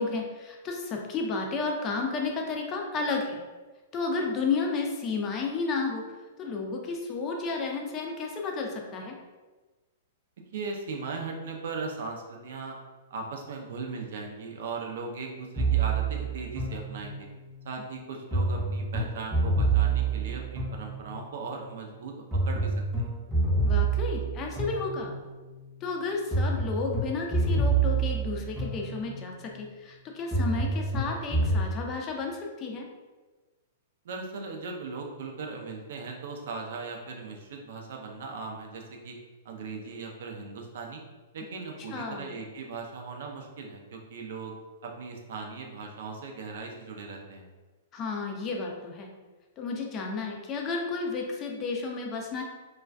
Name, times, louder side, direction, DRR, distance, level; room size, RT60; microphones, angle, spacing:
voice 1, 0.0-3.4 3.9-6.0 6.4-9.2 23.6-25.1 25.8-32.9 41.9-42.3 47.9-49.1 49.6-52.4, left 4 dB, 30° left, 1 dB, 0.5 m, -32 dB
voice 2, 10.5-12.8 13.1-17.3 17.6-23.1 34.0-39.1 39.4-41.0 41.3-44.5 44.8-47.5, right 4 dB, 70° right, 1 dB, 0.4 m, -38 dB
sound 1, 15.6-17.4 18.3-21.4 22.3-25.4 26.3-29.3 30.3-31.7, right 3 dB, 10° right, 0.7 m, -27 dB
2.4 x 2.2 x 2.3 m, 1.3 s
hypercardioid pair, 120°, 0 cm